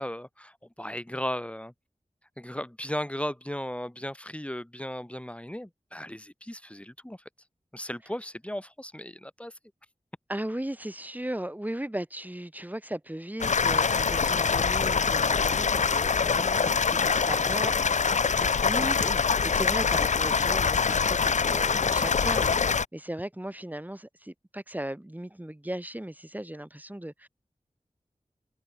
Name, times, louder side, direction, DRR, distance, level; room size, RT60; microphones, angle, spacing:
voice 1, 0.0-1.7 2.4-7.2 7.7-9.5 19.0-19.2, equal, 10° left, 4.4 m, -36 dB
voice 2, 10.3-27.3, right 1 dB, 15° right, 4.8 m, -37 dB
sound 1, 13.4-22.8, left 5 dB, 85° left, 0.7 m, -24 dB
wide cardioid pair, 75°, 12 cm